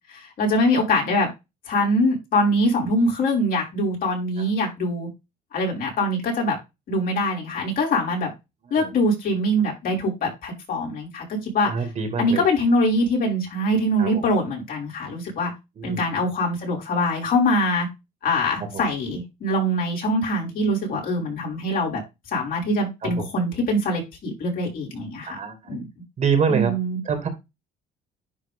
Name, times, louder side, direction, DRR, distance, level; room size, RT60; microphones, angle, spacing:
voice 1, 0.1-1.3 1.7-5.1 5.5-6.6 6.9-8.3 8.7-11.7 12.2-15.5 15.8-17.9 18.2-22.0 22.3-25.4 25.7-25.8 26.5-27.0, left 1 dB, 60° left, 5.5 m, -23 dB
voice 2, 11.7-12.4 14.0-14.2 15.8-16.0 18.7-18.8 23.0-23.3 25.3-25.7 26.2-26.7 27.0-27.3, right 6 dB, 45° right, 2.4 m, -25 dB
10.5 x 3.7 x 3.7 m
cardioid pair, 110°, 17 cm